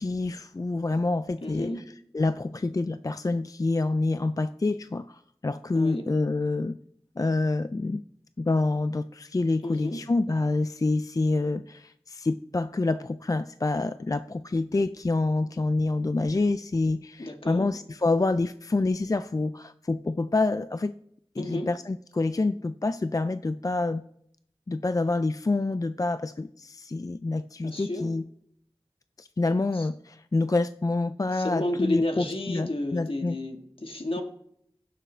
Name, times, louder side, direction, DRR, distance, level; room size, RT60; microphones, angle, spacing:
voice 1, 0.0-6.8 7.2-8.0 8.4-21.0 21.4-24.0 24.7-28.2 29.2-33.4, left 3 dB, 35° left, 12 dB, 0.3 m, -27 dB
voice 2, 1.4-1.8 5.7-6.0 9.6-10.0 17.2-17.7 21.4-21.7 27.6-28.1 31.3-34.2, left 1 dB, 65° left, 4 dB, 1.5 m, -31 dB
16.5 x 6.7 x 3.3 m, 0.70 s
wide cardioid pair, 40°, 10 cm